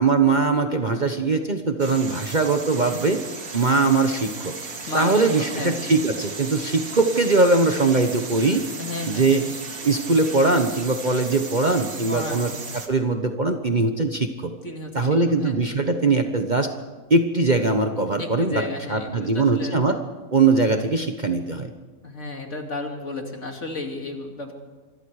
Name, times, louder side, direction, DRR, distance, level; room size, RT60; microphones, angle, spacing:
voice 1, 0.0-3.2 3.5-4.5 4.9-8.6 9.1-9.5 9.8-12.5 12.9-14.5 14.9-16.7 17.1-18.6 18.9-20.0 20.3-21.7, right 3 dB, 35° right, 5 dB, 1.1 m, -21 dB
sound 1, 1.8-12.9, right 4 dB, 65° right, 2.4 m, -36 dB
voice 2, 4.8-5.8 8.8-9.3 12.1-12.5 14.6-15.6 18.2-19.8 22.0-24.5, left 2 dB, 50° left, 2 dB, 3.0 m, -33 dB
26.0 x 22.5 x 4.9 m, 1.3 s
omnidirectional pair, 1.6 m